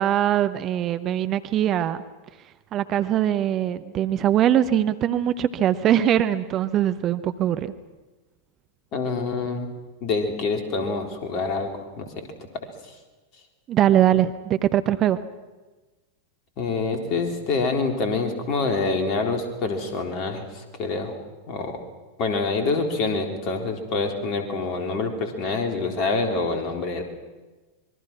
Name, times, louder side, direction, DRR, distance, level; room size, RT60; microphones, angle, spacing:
voice 1, 0.0-2.0 2.7-7.7 13.7-15.2, right 11 dB, 30° right, 12 dB, 0.9 m, -22 dB
voice 2, 8.9-9.7 10.0-12.9 16.6-21.2 21.5-21.8 22.2-27.0, left 3 dB, 40° left, 4 dB, 3.9 m, -26 dB
26.0 x 22.5 x 6.1 m, 1.2 s
figure-of-eight pair, 90°, 0 cm